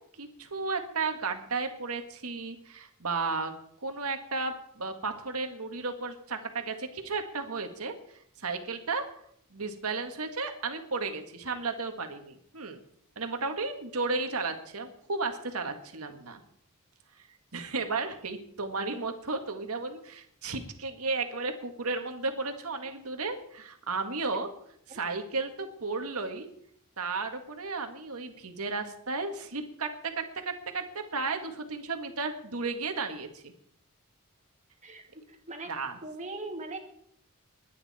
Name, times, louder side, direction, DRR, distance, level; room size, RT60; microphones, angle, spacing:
voice 1, 0.2-3.5 3.8-8.0 8.4-9.1 9.5-12.8 13.2-16.4 17.5-24.5 24.9-26.5 27.0-33.5 35.7-36.0, right 3 dB, 80° right, 6 dB, 1.8 m, -34 dB
voice 2, 34.8-35.7 36.0-36.8, right 2 dB, 30° right, 3 dB, 2.3 m, -40 dB
21.0 x 9.9 x 4.3 m, 0.68 s
head